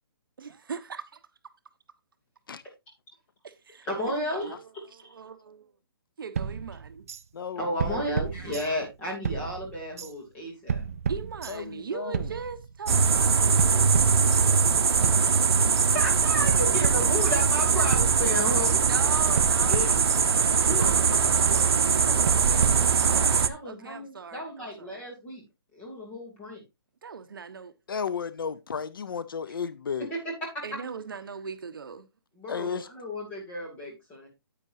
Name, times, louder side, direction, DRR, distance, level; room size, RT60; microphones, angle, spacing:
voice 1, 0.4-1.0 3.4-5.6 6.2-7.1 11.1-14.9 18.8-22.8 23.5-25.0 27.0-27.7 30.6-32.1, right 5 dB, 60° right, 1.0 m, -40 dB
voice 2, 3.8-5.1 7.6-10.8 15.4-18.8 19.7-20.0 20.6-25.4 25.7-26.6 30.1-30.3 32.3-34.3, left 1 dB, 10° left, 2.8 m, -34 dB
sound 1, 6.4-7.2 7.8-9.0 9.2-10.1 10.7-11.8 12.1-13.0 13.6-14.7 15.0-15.9 16.5-17.6 17.9-18.8 19.4-20.5 20.8-21.7 22.3-23.4, right 7 dB, 35° right, 0.5 m, -32 dB
voice 3, 7.3-8.0 11.5-12.3 27.9-30.1 32.5-32.9, left 6 dB, 60° left, 0.7 m, -33 dB
sound 2, 12.9-23.5, right 6 dB, 85° right, 0.7 m, -22 dB
9.9 x 8.8 x 2.7 m
hypercardioid pair, 175°, 13 cm